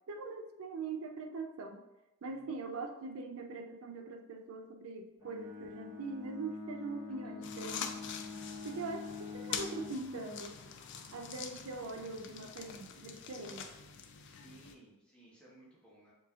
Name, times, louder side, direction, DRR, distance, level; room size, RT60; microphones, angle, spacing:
voice 1, 0.1-1.8 2.2-7.9 8.6-10.6 11.1-13.7, right 3 dB, 70° right, 5 dB, 0.4 m, -42 dB
voice 2, 2.2-2.5 5.6-5.7 7.2-7.3 14.2-16.1, right 1 dB, 5° left, -8 dB, 1.2 m, -59 dB
Bowed string instrument, 5.2-10.1, left 4 dB, 15° right, 0.8 m, -45 dB
sound 1, 7.4-14.7, left 7 dB, 55° left, 0.4 m, -45 dB
7.2 x 2.8 x 2.4 m, 0.97 s
head